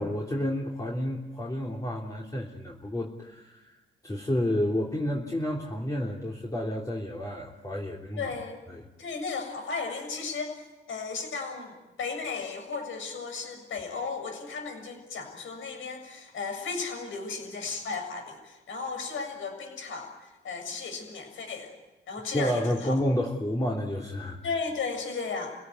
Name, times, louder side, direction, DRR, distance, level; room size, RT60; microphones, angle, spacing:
voice 1, 0.0-3.7 4.0-8.2 8.7-8.8 22.3-24.4, left 1 dB, 15° left, -2 dB, 3.2 m, -30 dB
voice 2, 8.2-8.6 9.0-21.7 22.1-23.0 24.4-25.6, left 4 dB, 75° left, 5 dB, 6.9 m, -35 dB
29.5 x 17.0 x 9.6 m, 1.1 s
cardioid pair, 90°, 21 cm